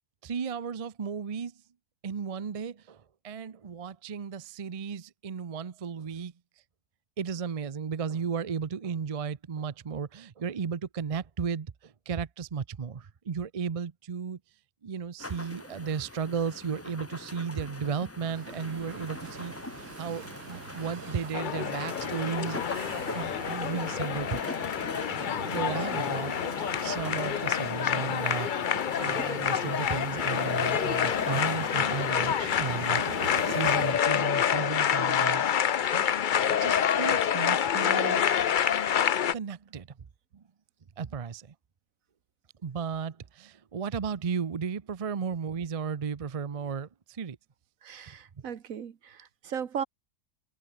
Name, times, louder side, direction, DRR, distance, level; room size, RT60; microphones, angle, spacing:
voice 1, 0.2-1.5 2.0-6.3 7.2-14.4 14.8-22.6 23.1-24.6 25.2-26.3 26.8-33.0 33.5-35.4 35.9-36.1 36.6-38.3 39.3-39.9 40.3-40.4 41.0-41.5 42.6-47.4, right 6 dB, 45° right, 0.4 m, -34 dB
sound 1, 15.2-33.6, left 2 dB, 10° left, 0.8 m, -42 dB
sound 2, 18.3-33.9, right 10 dB, 85° right, 1.6 m, -44 dB
sound 3, 21.3-39.3, left 9 dB, 65° left, 0.5 m, -27 dB
voice 2, 47.8-49.8, right 8 dB, 60° right, 1.5 m, -37 dB
omnidirectional pair, 1.7 m